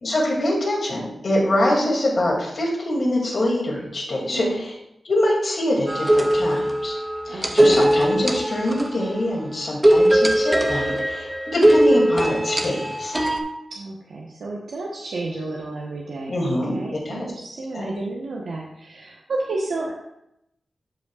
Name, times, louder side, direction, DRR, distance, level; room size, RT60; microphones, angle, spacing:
voice 1, 0.0-4.7 5.0-7.0 7.3-13.1 16.3-16.7 17.0-17.3 17.7-17.9, left 1 dB, 45° left, -2 dB, 2.4 m, -24 dB
voice 2, 4.3-4.6 7.3-7.9 13.7-19.9, right 2 dB, 80° right, -3 dB, 1.0 m, -32 dB
sound 1, 5.9-9.1 9.8-13.4, right 1 dB, 10° right, 0.7 m, -19 dB
12.0 x 5.4 x 2.4 m, 0.80 s
wide cardioid pair, 150°, 0 cm